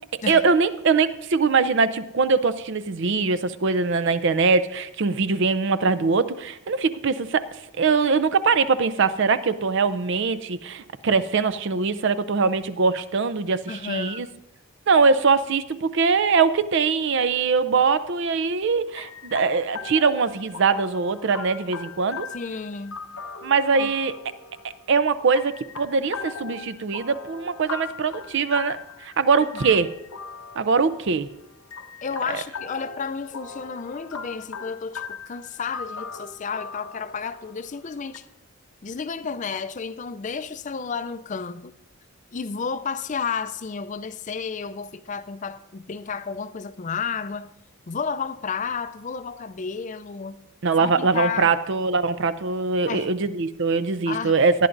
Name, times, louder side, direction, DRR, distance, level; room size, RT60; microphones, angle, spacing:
voice 1, 0.3-14.3 14.9-22.3 23.4-24.2 24.9-29.9 30.6-31.3 32.3-32.4 50.6-54.7, right 4 dB, 55° right, 0.5 m, -22 dB
voice 2, 13.7-14.2 22.3-23.0 23.8-23.9 29.4-29.6 32.0-38.3 38.8-41.7 42.3-47.5 47.9-50.4 50.8-51.5 52.9-53.1 54.1-54.4, left 5 dB, 35° left, 0.4 m, -32 dB
sound 1, 19.0-38.2, left 5 dB, 80° left, 0.9 m, -39 dB
19.0 x 11.0 x 2.6 m
head